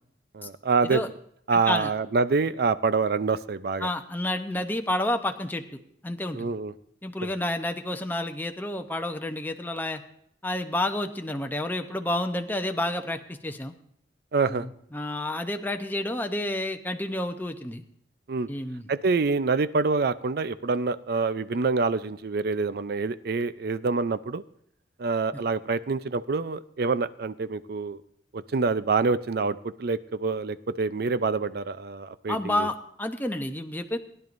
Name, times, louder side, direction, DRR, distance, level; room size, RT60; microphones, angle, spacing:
voice 1, 0.3-1.0 1.5-3.9 6.3-6.7 7.2-7.3 14.3-14.7 18.3-18.5 18.9-24.4 25.0-28.0 28.3-32.7, right 4 dB, 60° right, 14 dB, 0.5 m, -26 dB
voice 2, 1.5-1.9 3.8-5.6 6.0-6.5 7.0-10.0 10.4-13.7 14.5-17.8 18.5-18.9 25.3-25.4 32.3-34.0, left 1 dB, 10° left, 6 dB, 0.7 m, -30 dB
19.5 x 10.5 x 2.6 m, 0.69 s
head